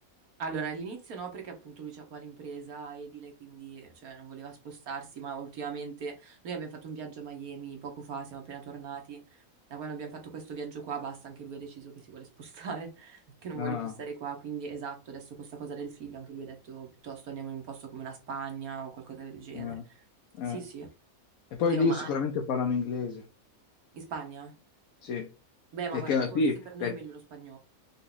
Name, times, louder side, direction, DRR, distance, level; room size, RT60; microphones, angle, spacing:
voice 1, 0.4-9.4 9.7-20.0 20.4-20.9 21.6-22.1 23.9-24.5 25.7-27.6, right 6 dB, 80° right, 1.6 m, -40 dB
voice 2, 13.6-13.9 19.5-19.8 20.4-20.6 21.5-23.2 25.0-25.3 25.9-27.0, left 4 dB, 75° left, 1.0 m, -29 dB
5.4 x 2.3 x 3.9 m
omnidirectional pair, 1.5 m